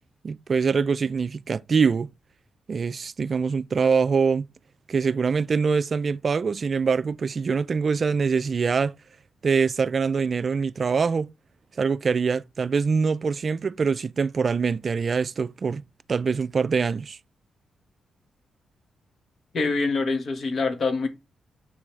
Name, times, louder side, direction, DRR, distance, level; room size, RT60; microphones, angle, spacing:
voice 1, 0.2-2.1 2.7-4.5 4.9-8.9 9.4-11.3 11.8-15.8 16.1-17.2, right 5 dB, 50° right, 0.3 m, -24 dB
voice 2, 19.5-21.1, left 3 dB, 55° left, 1.6 m, -25 dB
7.6 x 6.0 x 3.3 m
cardioid pair, 80°, 0 cm